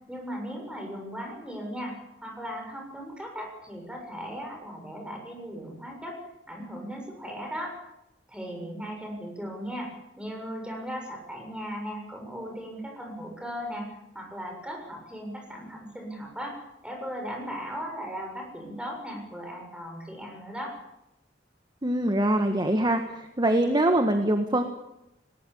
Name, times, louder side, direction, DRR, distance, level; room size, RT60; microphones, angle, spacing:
voice 1, 0.1-6.2 6.5-7.7 8.3-20.7, equal, 5° right, 1 dB, 7.3 m, -37 dB
voice 2, 21.8-24.6, right 1 dB, 25° right, 6 dB, 1.6 m, -24 dB
20.5 x 19.5 x 8.8 m, 0.88 s
head